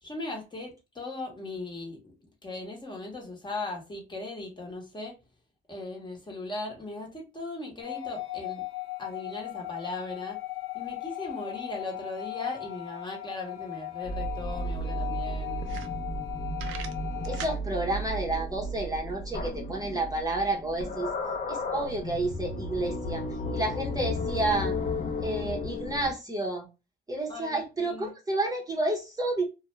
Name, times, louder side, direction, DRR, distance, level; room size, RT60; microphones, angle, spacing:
voice 1, 0.0-2.0 2.4-5.1 5.7-8.6 9.0-10.4 10.7-15.7 27.3-28.1, left 2 dB, 25° left, 0.9 m, -38 dB
sound 1, 7.8-17.6, left 18 dB, 90° left, 0.5 m, -38 dB
sound 2, 14.0-26.1, left 1 dB, 40° left, 0.6 m, -34 dB
sound 3, 14.2-14.3 14.6-14.7 15.2-15.3 15.6-16.3 16.6-17.6, right 8 dB, 90° right, 0.4 m, -41 dB
voice 2, 17.2-21.1 21.5-23.2 23.5-24.8 25.2-26.7 27.1-29.4, right 2 dB, 20° right, 0.7 m, -30 dB
2.3 x 2.1 x 3.0 m
cardioid pair, 90°, 20 cm